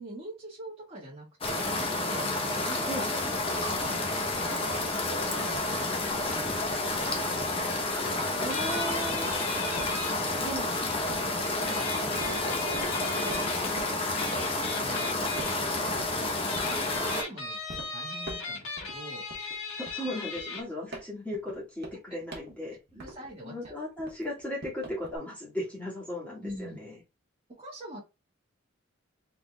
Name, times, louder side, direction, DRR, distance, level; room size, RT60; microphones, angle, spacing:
voice 1, 0.0-1.8 2.1-3.3 3.6-4.1 4.4-4.7 5.1-7.0 8.0-8.7 11.2-13.4 13.7-14.5 14.8-15.3 15.6-19.2 22.9-23.8 26.4-26.8 27.5-28.0, right 1 dB, 30° right, 1.5 m, -44 dB
sound 1, 1.4-17.2, left 2 dB, 30° left, 0.8 m, -30 dB
voice 2, 8.4-9.3 10.4-10.8 19.8-23.0 23.4-26.9, left 1 dB, 5° left, 1.9 m, -36 dB
sound 2, 8.5-10.1 11.7-13.7 14.2-15.6 16.4-20.6, left 3 dB, 80° left, 1.6 m, -37 dB
sound 3, 9.1-15.0 15.4-16.2 16.5-17.2 17.7-17.9 18.2-19.0 19.3-23.4 23.6-25.2, right 2 dB, 50° right, 1.2 m, -44 dB
4.0 x 3.9 x 2.3 m
head